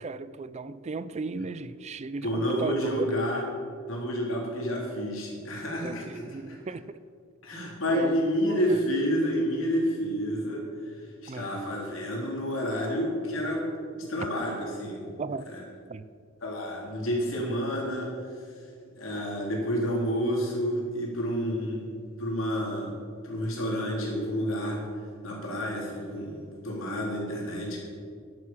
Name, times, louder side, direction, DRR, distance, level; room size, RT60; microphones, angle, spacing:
voice 1, 0.0-3.1 5.8-7.0 7.5-8.2 8.5-8.8 11.3-11.5 14.2-14.3 15.2-15.4 15.9-16.1 21.7-21.8, right 4 dB, 35° right, 15 dB, 0.4 m, -36 dB
voice 2, 2.2-3.4 3.9-6.6 7.4-10.6 11.2-13.7 13.9-15.2 15.5-15.6 16.4-18.1 19.0-21.8 22.2-22.9 23.2-24.8 25.2-27.8, equal, 75° left, -2 dB, 3.7 m, -29 dB
11.0 x 9.5 x 7.4 m, 2.1 s
head